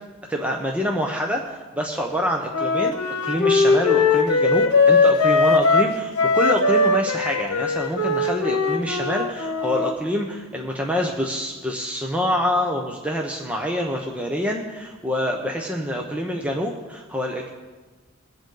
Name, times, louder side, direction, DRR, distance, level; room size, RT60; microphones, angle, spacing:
voice 1, 0.3-17.5, equal, 5° right, 0 dB, 0.8 m, -26 dB
Wind instrument woodwind instrument, 2.5-9.9, left 3 dB, 85° left, 1.1 m, -20 dB
22.0 x 7.9 x 3.9 m, 1.3 s
head